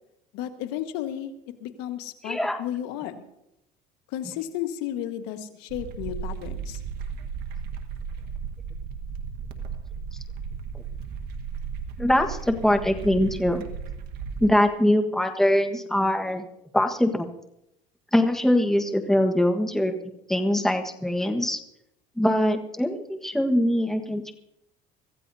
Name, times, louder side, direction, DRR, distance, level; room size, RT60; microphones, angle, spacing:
voice 1, 0.3-1.3 1.6-3.2 4.1-6.8, left 11 dB, 80° left, 6 dB, 1.5 m, -33 dB
voice 2, 2.2-2.6 12.0-13.6 14.4-16.4 16.7-17.3 18.1-19.9 20.3-21.6 22.2-24.3, left 1 dB, ahead, 5 dB, 1.4 m, -22 dB
sound 1, 5.7-14.5, right 6 dB, 70° right, 1.5 m, -35 dB
25.0 x 15.0 x 2.8 m, 0.83 s
cardioid pair, 130°, 17 cm